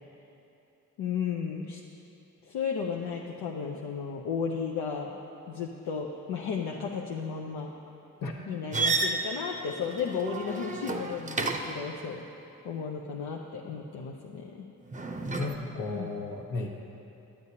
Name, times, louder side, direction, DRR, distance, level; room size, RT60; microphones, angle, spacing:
voice 1, 1.0-1.8 2.4-5.2 5.5-7.7 8.5-12.2 12.6-14.7 15.9-16.1, left 6 dB, 80° left, -1 dB, 0.6 m, -34 dB
sound 1, 8.7-11.9 14.9-15.5, right 3 dB, 20° right, 0.6 m, -31 dB
voice 2, 15.4-16.7, left 3 dB, 60° left, 1 dB, 1.1 m, -34 dB
9.1 x 8.5 x 2.8 m, 2.9 s
supercardioid pair, 40°, 38 cm